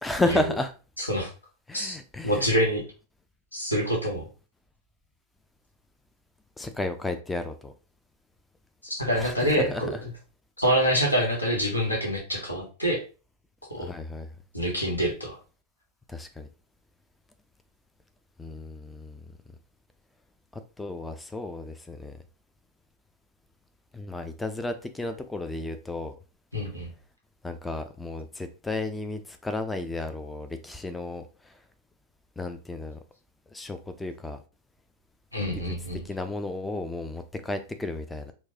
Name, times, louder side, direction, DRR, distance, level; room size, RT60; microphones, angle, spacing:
voice 1, 0.0-0.7 1.7-2.5 6.6-7.7 9.1-10.0 13.8-14.3 16.1-16.5 18.4-19.2 20.5-22.2 23.9-26.2 27.4-31.6 32.4-33.0 33.5-34.4 35.5-35.7 36.0-38.3, left 2 dB, 10° left, 0.3 m, -33 dB
voice 2, 2.2-2.8 3.5-4.2 8.8-9.9 10.6-13.0 13.8-13.9 14.5-15.4 26.5-26.9 35.3-36.0, equal, 85° left, 1.0 m, -26 dB
4.4 x 2.1 x 2.7 m
figure-of-eight pair, 90°, 0 cm